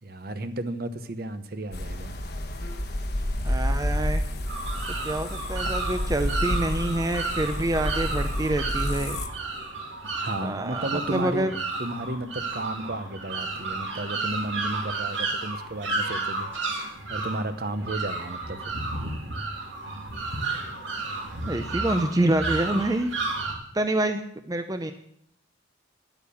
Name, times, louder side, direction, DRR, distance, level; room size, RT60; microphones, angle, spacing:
voice 1, 0.0-2.2 10.1-11.5 11.8-18.7, right 1 dB, 50° right, 10 dB, 0.9 m, -33 dB
sound 1, 1.7-9.3, left 1 dB, 50° left, 1.1 m, -29 dB
voice 2, 3.4-4.2 5.0-9.2 10.4-11.5 21.5-23.1 23.7-24.2 24.5-24.9, right 1 dB, 20° right, 7 dB, 0.6 m, -27 dB
sound 2, 4.5-23.5, right 3 dB, 75° right, 2.5 m, -32 dB
10.5 x 9.1 x 7.0 m, 0.72 s
head